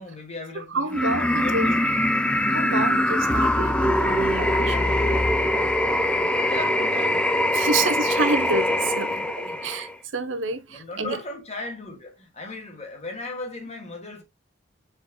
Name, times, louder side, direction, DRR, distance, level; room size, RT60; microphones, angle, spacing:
voice 1, 0.0-1.9 6.2-8.2 9.0-9.7 10.7-14.2, left 2 dB, 35° left, 1.5 m, -38 dB
voice 2, 0.5-1.7 2.5-5.0 7.5-9.2 9.6-11.2, right 3 dB, 90° right, 0.8 m, -28 dB
sound 1, 0.9-10.0, left 1 dB, 5° left, 0.4 m, -23 dB
sound 2, 3.3-6.3, left 2 dB, 75° left, 1.0 m, -30 dB
4.9 x 4.3 x 2.2 m
head